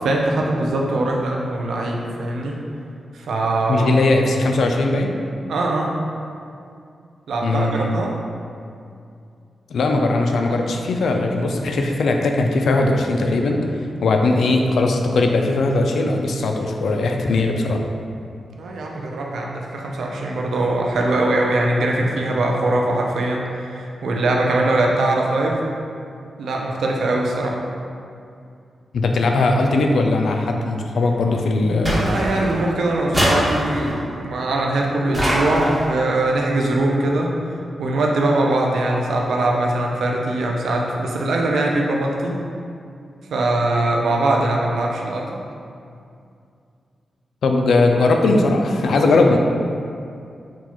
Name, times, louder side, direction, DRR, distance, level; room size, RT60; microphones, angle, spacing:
voice 1, 0.0-2.6 3.1-3.9 5.5-5.9 7.3-8.1 18.6-25.6 26.4-27.6 31.5-37.3 37.8-42.4 43.3-45.4, right 2 dB, 90° right, -1 dB, 0.5 m, -21 dB
voice 2, 3.7-5.1 7.4-8.0 9.7-13.6 14.0-17.8 28.9-32.0 47.4-49.4, left 2 dB, 80° left, 3 dB, 0.4 m, -19 dB
sound 1, 31.9-32.6 33.1-34.0 35.1-36.0, equal, 5° right, 1.1 m, -22 dB
5.9 x 2.4 x 2.9 m, 2.4 s
cardioid pair, 95°, 0 cm